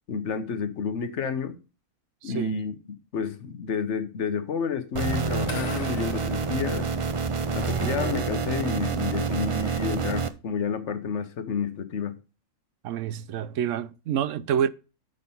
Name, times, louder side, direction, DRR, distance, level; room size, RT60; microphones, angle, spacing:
voice 1, 0.1-1.6 2.2-2.7 3.1-6.9 7.5-12.2, left 6 dB, 65° left, 1.2 m, -30 dB
voice 2, 2.2-2.6 12.8-14.7, right 9 dB, 75° right, 0.9 m, -28 dB
sound 1, 4.9-10.3, right 5 dB, 40° right, 0.4 m, -28 dB
sound 2, 5.5-7.6, left 4 dB, 80° left, 1.8 m, -43 dB
6.6 x 5.9 x 5.4 m
omnidirectional pair, 1.3 m